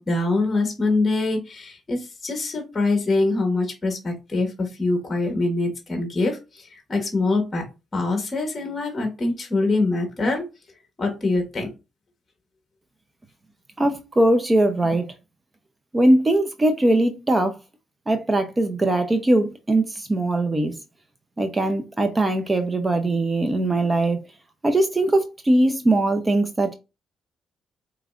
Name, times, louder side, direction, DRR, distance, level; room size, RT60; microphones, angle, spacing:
voice 1, 0.0-7.6 7.9-10.5 11.0-11.7, left 2 dB, 30° left, 1.3 m, -24 dB
voice 2, 13.8-15.1 15.9-17.5 18.1-20.7 21.4-24.2 24.6-26.7, right 1 dB, 20° right, 0.6 m, -21 dB
4.8 x 3.1 x 2.4 m
cardioid pair, 90°, 0 cm